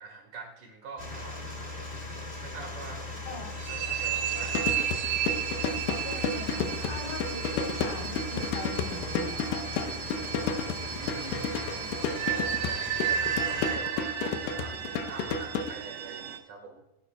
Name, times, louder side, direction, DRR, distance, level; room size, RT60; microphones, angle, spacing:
voice 1, 0.0-2.0 2.4-3.4 3.7-4.9 10.9-12.8 13.1-16.8, right 4 dB, 55° right, 2 dB, 3.2 m, -45 dB
sound 1, 1.0-13.8, left 2 dB, 40° left, 0.7 m, -39 dB
sound 2, 3.6-16.4, right 10 dB, 80° right, 3.1 m, -33 dB
sound 3, 4.4-15.7, left 5 dB, 90° left, 3.0 m, -32 dB
voice 2, 6.0-9.6, left 1 dB, 60° left, 0 dB, 5.3 m, -41 dB
18.5 x 11.0 x 2.3 m, 0.88 s
omnidirectional pair, 4.7 m